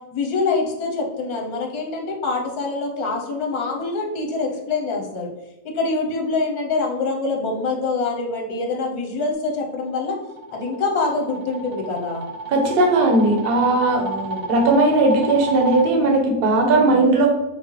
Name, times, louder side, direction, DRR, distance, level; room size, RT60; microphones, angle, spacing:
voice 1, 0.1-5.3 5.6-10.1 10.5-12.3 14.0-14.4 16.6-17.0, left 3 dB, 90° left, 1 dB, 1.3 m, -25 dB
sound 1, 9.7-15.9, right 2 dB, 85° right, 1.1 m, -31 dB
voice 2, 12.5-14.0 14.5-17.3, right 2 dB, 50° right, 1 dB, 0.8 m, -17 dB
5.9 x 2.0 x 3.1 m, 0.95 s
omnidirectional pair, 1.6 m